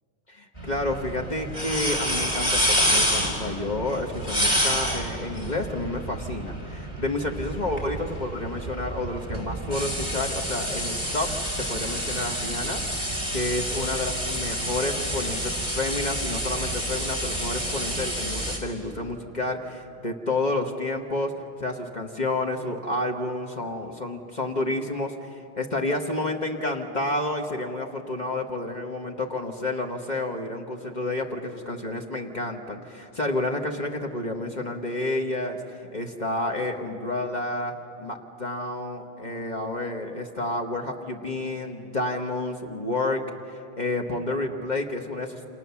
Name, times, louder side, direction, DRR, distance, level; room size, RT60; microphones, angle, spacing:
voice 1, 0.3-11.3 11.6-12.8 13.3-21.3 21.6-37.7 38.0-43.2 43.5-45.4, left 2 dB, 45° left, 2 dB, 1.6 m, -30 dB
sound 1, 0.6-18.6, equal, 25° left, 4.2 m, -28 dB
29.0 x 27.5 x 7.1 m, 2.6 s
omnidirectional pair, 1.1 m